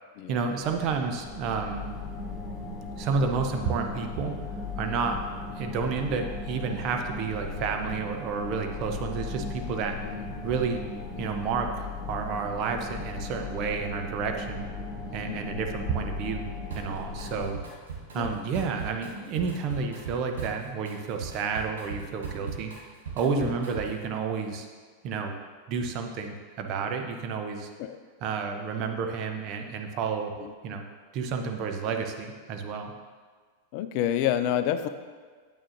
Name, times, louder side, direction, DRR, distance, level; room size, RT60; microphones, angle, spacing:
voice 1, 0.3-1.9 3.0-4.3 4.8-5.2 5.6-9.9 10.4-10.8 11.2-14.6 15.1-16.5 16.7-17.6 18.1-22.7 23.2-24.7 25.0-25.3 25.7-27.7 28.2-30.3 30.6-30.9 31.1-32.9, right 5 dB, 40° right, 4 dB, 0.8 m, -30 dB
sound 1, 0.6-17.5, left 3 dB, ahead, 1.9 m, -37 dB
voice 2, 15.3-15.6 18.1-18.5 23.3-23.6 27.8-28.0 30.4-30.5 33.7-34.9, left 11 dB, 45° left, 11 dB, 0.4 m, -29 dB
Drum kit, 16.7-17.3 17.5-24.1, right 5 dB, 65° right, 1.6 m, -39 dB
8.8 x 8.7 x 2.7 m, 1.5 s
figure-of-eight pair, 90°, 0 cm